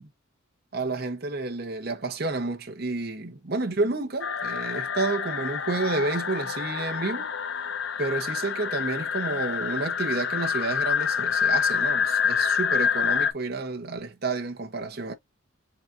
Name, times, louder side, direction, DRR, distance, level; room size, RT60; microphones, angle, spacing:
voice 1, 0.7-7.3 8.0-15.1, right 3 dB, 50° right, 1.0 m, -30 dB
sound 1, 4.2-13.3, left 7 dB, 60° left, 0.6 m, -27 dB
4.0 x 3.8 x 2.7 m
head